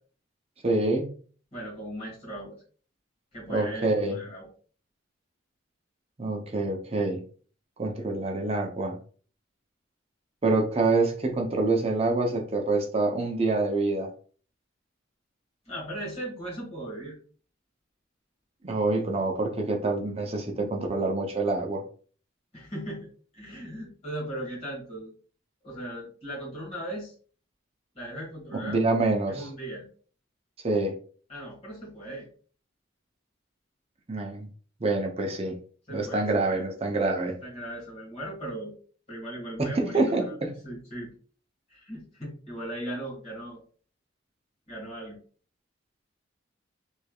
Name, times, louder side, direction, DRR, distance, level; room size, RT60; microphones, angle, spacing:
voice 1, 0.6-1.1 3.5-4.2 6.2-7.2 7.8-9.0 10.4-14.1 18.6-21.8 28.5-29.5 30.6-30.9 34.1-34.5 34.8-35.5 35.9-37.3 39.6-40.5, right 2 dB, 30° right, 2 dB, 0.6 m, -26 dB
voice 2, 1.5-2.6 3.3-4.5 15.7-17.2 22.5-25.1 25.6-27.1 28.0-28.8 29.3-29.9 31.3-32.3 35.9-36.7 37.2-38.8 39.1-40.4 40.6-41.1 41.7-43.6 44.7-45.2, right 1 dB, 30° left, -4 dB, 1.7 m, -38 dB
3.2 x 3.2 x 2.3 m, 0.43 s
head